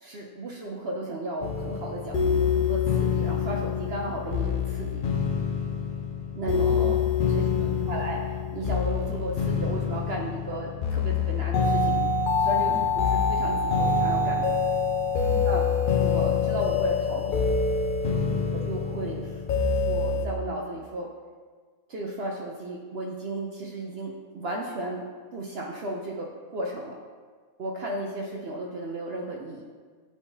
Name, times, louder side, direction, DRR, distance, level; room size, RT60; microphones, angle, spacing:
voice 1, 0.0-5.0 6.3-6.7 7.3-7.5 7.9-8.2 8.5-12.0 12.4-14.5 15.4-15.7 16.0-17.4 18.5-19.4 19.7-21.1 21.9-25.1 25.3-27.0 27.6-29.6, right 1 dB, 60° right, -1 dB, 0.7 m, -34 dB
sound 1, 1.4-20.3, left 5 dB, 90° left, 0.4 m, -26 dB
voice 2, 6.4-8.0 12.6-12.9 15.3-15.5 18.3-18.5, equal, 5° left, -2 dB, 0.3 m, -38 dB
10.0 x 3.6 x 2.7 m, 1.5 s
omnidirectional pair, 1.6 m